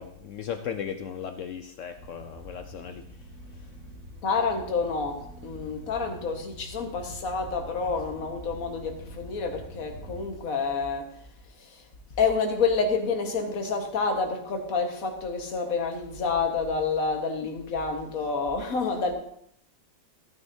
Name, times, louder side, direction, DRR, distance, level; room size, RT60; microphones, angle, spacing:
voice 1, 0.0-3.0 3.5-3.7, left 8 dB, 90° left, 0.6 m, -36 dB
sound 1, 1.9-10.3, equal, 45° right, 2.7 m, -46 dB
voice 2, 4.2-11.2 11.5-11.9 12.2-19.1, left 4 dB, 50° left, 1.6 m, -28 dB
15.0 x 9.6 x 2.7 m
omnidirectional pair, 2.1 m